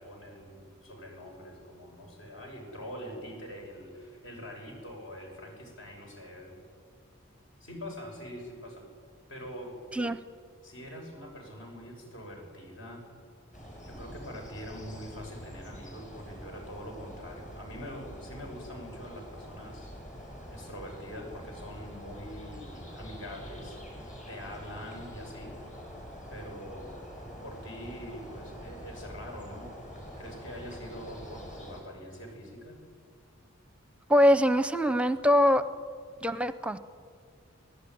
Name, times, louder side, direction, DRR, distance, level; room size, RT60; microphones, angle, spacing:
voice 1, 0.0-6.6 7.6-8.9 9.3-9.8 10.6-13.0 13.8-25.6 26.3-27.0 27.4-29.8 30.2-32.8, equal, 65° left, 1 dB, 6.8 m, -44 dB
sound 1, 13.5-31.8, equal, 40° left, 6.0 m, -45 dB
voice 2, 34.1-35.6 36.2-36.8, equal, 5° right, 12 dB, 0.7 m, -23 dB
24.0 x 18.0 x 9.5 m, 2.1 s
head